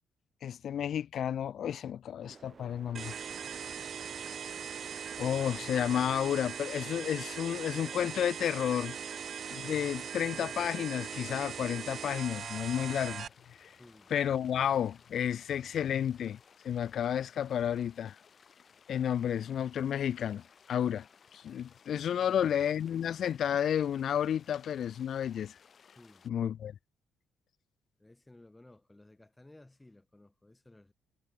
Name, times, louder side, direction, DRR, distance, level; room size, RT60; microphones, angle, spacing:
voice 1, 0.4-3.2 5.2-9.0 9.5-13.3 14.1-16.4 16.6-18.2 18.9-20.4 20.7-21.1 21.3-25.5 26.2-26.7, left 9 dB, 65° left, 0.3 m, -31 dB
sound 1, 2.2-16.2 16.7-17.5, right 5 dB, 40° right, 4.0 m, -60 dB
sound 2, 2.9-13.3, right 7 dB, 55° right, 0.6 m, -40 dB
sound 3, 12.2-26.3, left 6 dB, 45° left, 5.4 m, -61 dB
voice 2, 13.8-14.1 26.0-26.3 28.0-30.9, left 2 dB, 15° left, 2.3 m, -57 dB
cardioid pair, 90°, 0 cm